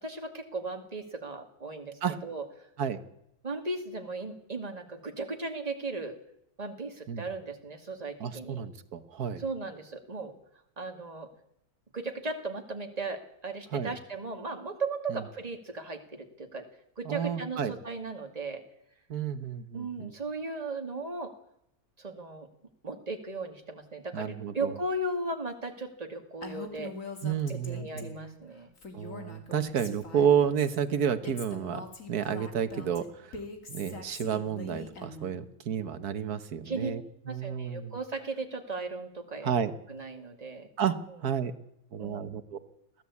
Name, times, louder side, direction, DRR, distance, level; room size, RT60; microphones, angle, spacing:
voice 1, 0.0-2.7 3.4-6.1 6.6-8.6 9.4-10.3 10.8-11.3 11.9-16.6 17.0-18.6 19.7-21.3 22.0-22.5 22.8-26.9 27.5-28.7 29.9-30.0 36.6-36.9 37.3-39.5 39.9-40.7 41.1-41.2 42.0-42.4, right 3 dB, 25° right, 4 dB, 2.3 m, -36 dB
voice 2, 8.2-9.4 13.7-13.9 15.1-15.2 17.1-17.7 19.1-20.1 24.1-24.7 27.2-28.1 28.9-31.8 32.1-33.4 33.7-37.0 37.3-37.9 39.4-39.7 40.8-40.9 41.2-41.5 41.9-42.6, right 8 dB, 90° right, 10 dB, 1.7 m, -30 dB
Female speech woman speaking, 26.4-28.4 28.8-30.8 31.2-35.4, left 3 dB, 60° left, 3.0 m, -43 dB
22.5 x 16.0 x 8.5 m, 0.77 s
omnidirectional pair, 1.6 m